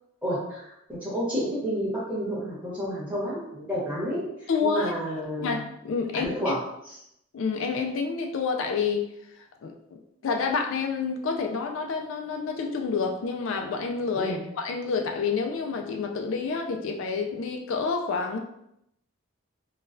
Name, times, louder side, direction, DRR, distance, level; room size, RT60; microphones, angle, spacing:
voice 1, 0.2-5.6 6.1-7.0 14.1-14.4, equal, 5° right, -8 dB, 1.2 m, -30 dB
voice 2, 4.5-4.9 5.4-6.5 7.3-9.1 9.6-18.4, left 5 dB, 70° left, 3 dB, 0.3 m, -28 dB
3.8 x 2.2 x 2.5 m, 0.79 s
head